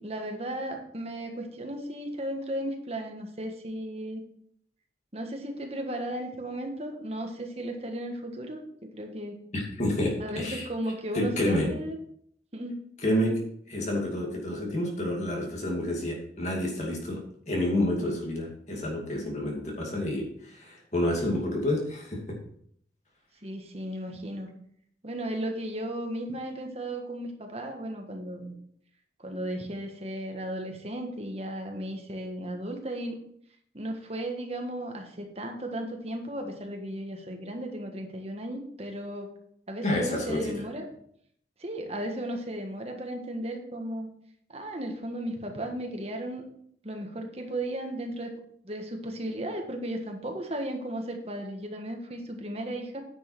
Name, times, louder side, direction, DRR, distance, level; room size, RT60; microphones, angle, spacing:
voice 1, 0.0-4.2 5.1-9.4 10.2-12.0 12.5-12.8 23.4-24.5 25.0-28.5 29.2-33.2 33.7-39.3 39.7-40.8 41.6-44.1 44.5-46.5 46.8-48.3 48.6-53.0, right 1 dB, 35° right, 3 dB, 1.5 m, -35 dB
voice 2, 9.5-10.7 11.1-11.7 13.0-13.4 13.7-22.4 39.8-40.5, left 1 dB, 40° left, -1 dB, 2.5 m, -29 dB
9.8 x 6.4 x 4.7 m, 0.66 s
head